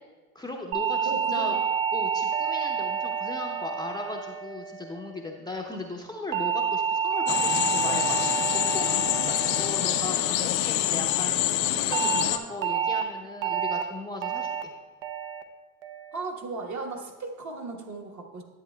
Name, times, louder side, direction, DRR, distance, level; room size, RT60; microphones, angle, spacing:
voice 1, 0.3-1.6 1.9-8.2 8.5-11.4 11.7-14.5, left 2 dB, 10° left, -1 dB, 0.6 m, -37 dB
sound 1, 0.7-5.2 6.3-10.8 11.9-12.2 12.6-13.0 13.4-13.8 14.2-14.6 15.0-15.4 15.8-16.2, right 7 dB, 70° right, 0.8 m, -29 dB
voice 2, 1.0-1.6 16.1-18.4, right 3 dB, 40° right, 2 dB, 1.2 m, -36 dB
sound 2, 7.3-12.4, left 13 dB, 75° left, 0.6 m, -26 dB
10.5 x 7.6 x 2.2 m, 1.4 s
supercardioid pair, 90°, 44 cm